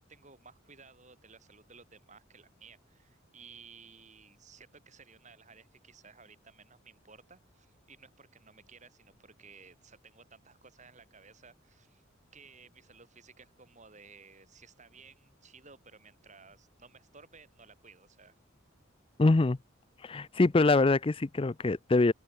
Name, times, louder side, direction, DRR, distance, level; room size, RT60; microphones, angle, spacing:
voice 1, 0.0-12.0 12.3-18.3, right 5 dB, 35° right, 7.6 m, -56 dB
voice 2, 19.2-19.6 20.0-22.1, left 3 dB, 25° left, 0.5 m, -24 dB
open air
head